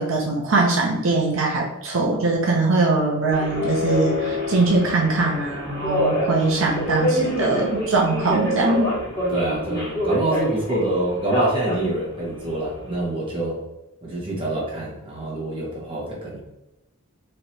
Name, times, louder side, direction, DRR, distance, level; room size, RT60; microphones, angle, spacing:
voice 1, 0.0-8.9, right 3 dB, 65° right, -1 dB, 0.6 m, -21 dB
Subway metro underground, 3.3-13.0, equal, 15° left, 1.5 m, -26 dB
voice 2, 9.3-13.6 14.0-16.4, right 1 dB, 25° right, -4 dB, 1.2 m, -26 dB
3.2 x 2.8 x 4.2 m, 0.91 s
head